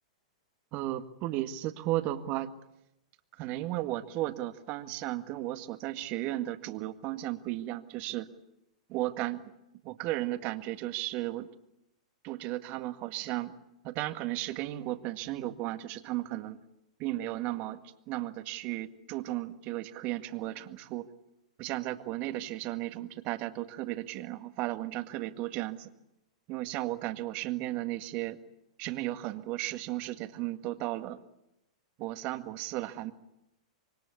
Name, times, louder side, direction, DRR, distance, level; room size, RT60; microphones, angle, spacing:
voice 1, 0.7-2.5 3.4-8.3 8.9-9.4 9.8-11.5 12.2-13.5 13.8-16.6 17.0-17.8 18.1-21.1 21.6-25.9 26.5-28.4 28.8-31.2 32.0-33.1, right 16 dB, 40° right, 9 dB, 1.9 m, -34 dB
26.5 x 24.0 x 8.4 m, 0.87 s
hypercardioid pair, 105°, 4 cm